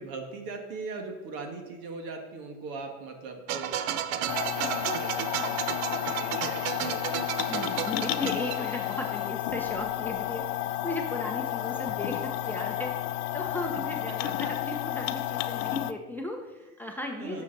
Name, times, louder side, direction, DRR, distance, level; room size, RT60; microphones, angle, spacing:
voice 1, 0.0-7.2 14.3-14.4 17.2-17.4, right 4 dB, 50° right, 3 dB, 1.9 m, -40 dB
sound 1, 3.5-9.2, right 9 dB, 65° right, 0.8 m, -33 dB
sound 2, 4.3-15.9, left 13 dB, 60° left, 0.6 m, -31 dB
voice 2, 7.5-12.9 13.3-17.4, left 1 dB, 5° left, 2 dB, 0.9 m, -36 dB
6.8 x 6.3 x 5.4 m, 1.2 s
hypercardioid pair, 100°, 44 cm